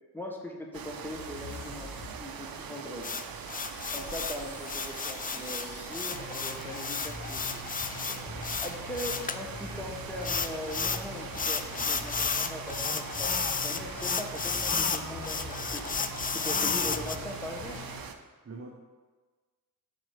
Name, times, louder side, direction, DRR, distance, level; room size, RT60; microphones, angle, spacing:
voice 1, 0.1-3.1 3.9-7.6 8.6-15.8 16.3-17.8, left 1 dB, 5° left, 0 dB, 1.3 m, -40 dB
sound 1, 0.7-18.1, right 7 dB, 80° right, 0.6 m, -42 dB
sound 2, 1.2-2.1 2.4-18.0, left 2 dB, 65° left, 1.4 m, -44 dB
sound 3, 3.0-9.4 10.2-11.0 11.3-17.2, left 5 dB, 25° left, 0.4 m, -32 dB
voice 2, 8.0-8.4 18.4-18.7, right 3 dB, 40° right, -1 dB, 0.9 m, -45 dB
6.2 x 4.6 x 4.8 m, 1.3 s
cardioid pair, 55°, 35 cm